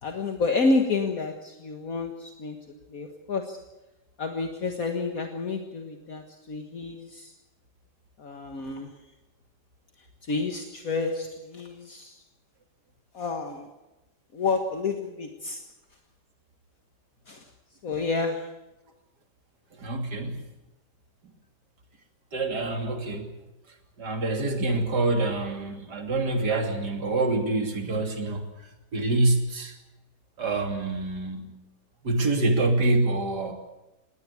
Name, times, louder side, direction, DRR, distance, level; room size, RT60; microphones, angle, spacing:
voice 1, 0.0-2.6 2.9-3.6 4.2-7.3 8.2-8.9 10.2-12.2 13.1-13.7 14.3-15.6 17.3-17.5 17.8-18.5, left 3 dB, 60° left, 4 dB, 2.0 m, -29 dB
voice 2, 19.8-20.4 22.3-23.3 24.0-28.4 28.9-29.7 30.4-31.6 32.0-33.5, right 2 dB, 80° right, 4 dB, 3.6 m, -26 dB
21.0 x 18.0 x 8.5 m, 0.99 s
omnidirectional pair, 1.7 m